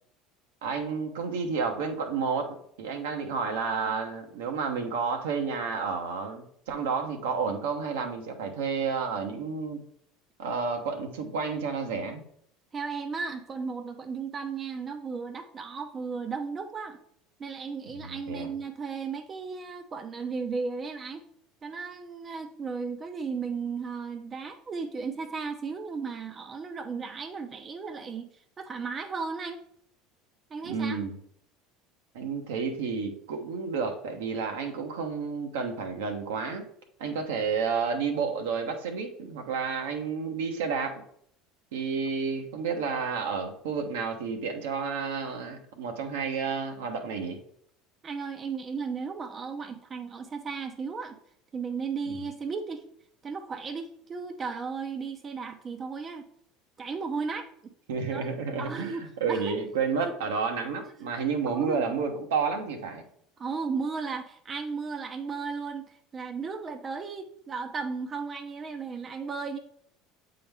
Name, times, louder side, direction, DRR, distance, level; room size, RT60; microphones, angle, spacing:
voice 1, 0.6-9.8 10.4-12.2 17.9-18.5 30.6-31.1 32.1-36.6 37.0-41.0 41.7-47.4 52.1-52.2 57.9-63.0, right 5 dB, 75° right, 4 dB, 0.9 m, -31 dB
voice 2, 12.7-17.0 17.4-21.2 21.6-28.3 28.6-29.6 30.5-31.0 48.0-51.2 51.5-52.8 53.2-56.3 56.8-57.5 58.1-58.2 58.6-59.0 59.3-59.6 60.0-60.1 61.0-61.8 63.4-69.6, right 5 dB, 35° right, 6 dB, 0.6 m, -35 dB
7.7 x 3.9 x 3.4 m, 0.66 s
hypercardioid pair, 75°, 0 cm